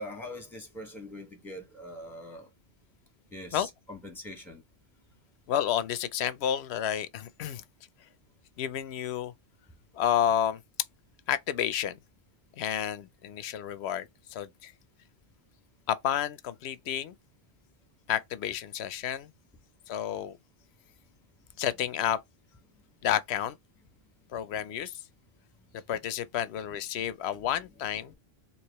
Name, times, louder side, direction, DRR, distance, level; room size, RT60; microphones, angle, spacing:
voice 1, 0.0-2.5 3.3-4.6 27.4-27.5 28.0-28.1, left 1 dB, ahead, 1.3 m, -42 dB
voice 2, 5.5-7.6 8.6-9.3 9.9-10.6 11.3-12.0 12.6-14.7 15.9-17.1 18.1-19.3 19.9-20.4 21.6-22.2 23.0-23.6 24.3-25.0 25.9-28.1, left 10 dB, 80° left, 0.8 m, -30 dB
4.7 x 2.9 x 2.9 m
omnidirectional pair, 1.1 m